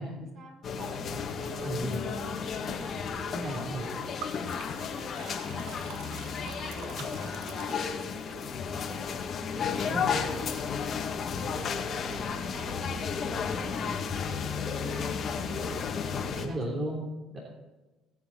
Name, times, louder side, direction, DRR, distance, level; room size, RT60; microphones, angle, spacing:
voice 1, 0.0-3.6 3.9-16.6, right 1 dB, 55° right, 0 dB, 5.5 m, -48 dB
sound 1, 0.6-16.5, left 6 dB, 50° left, 1.9 m, -33 dB
voice 2, 1.6-2.0 3.3-3.9 6.7-7.4 9.8-10.1 16.4-17.0 17.3-17.4, right 1 dB, 35° right, -4 dB, 3.0 m, -35 dB
Liquid, 4.2-8.4, right 8 dB, 80° right, 1.0 m, -46 dB
20.5 x 8.6 x 4.0 m, 1.1 s
cardioid pair, 105°, 0 cm